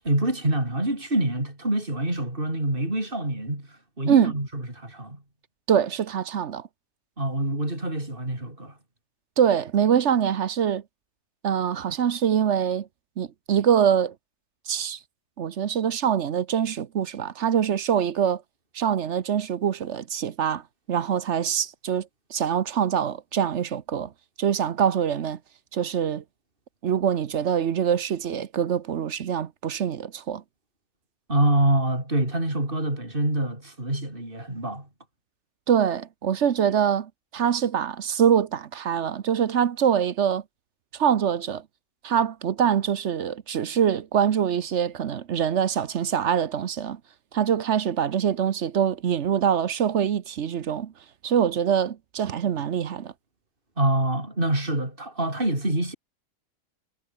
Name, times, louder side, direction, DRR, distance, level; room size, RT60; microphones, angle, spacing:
voice 1, 0.0-3.7 4.0-5.2 7.2-8.7 31.3-34.9 53.8-55.9, right 1 dB, 35° right, 7.3 m, -26 dB
voice 2, 5.7-6.6 9.4-10.8 11.4-12.9 13.2-14.1 14.7-15.0 15.4-18.4 18.7-20.6 20.9-22.1 22.3-24.1 24.4-25.4 25.7-26.2 26.8-30.4 35.7-40.4 41.0-41.6 42.0-47.0 47.3-50.9 51.2-53.1, right 8 dB, 55° right, 1.1 m, -24 dB
omnidirectional pair, 1.5 m